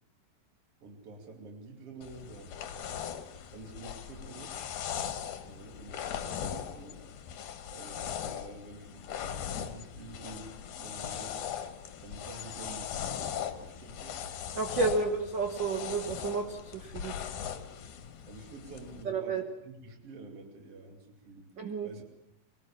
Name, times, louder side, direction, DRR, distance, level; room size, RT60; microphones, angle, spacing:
voice 1, 0.8-3.1 3.5-4.6 5.4-7.0 7.7-11.4 12.0-14.2 14.9-15.0 18.3-21.5 21.8-22.0, right 3 dB, 45° right, 2 dB, 3.6 m, -48 dB
sound 1, 2.0-19.0, left 9 dB, 65° left, 2.6 m, -39 dB
voice 2, 14.5-17.2 19.0-19.4 21.6-21.9, right 4 dB, 65° right, 4 dB, 1.1 m, -31 dB
24.0 x 19.0 x 7.3 m, 0.87 s
omnidirectional pair, 4.1 m